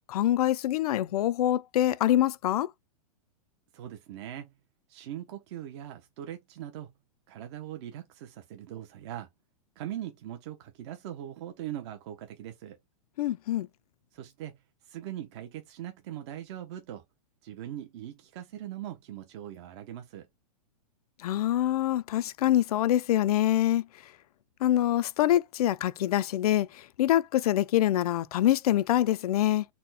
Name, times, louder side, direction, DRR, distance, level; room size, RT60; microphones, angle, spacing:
voice 1, 0.1-2.7 13.2-13.7 21.2-23.9 24.6-29.7, left 12 dB, 75° left, 0.4 m, -25 dB
voice 2, 3.7-4.5 4.9-6.9 7.3-9.3 9.8-12.8 14.1-17.0 17.4-20.3, right 11 dB, 45° right, 0.7 m, -41 dB
4.2 x 2.1 x 4.0 m
supercardioid pair, 155°, 19 cm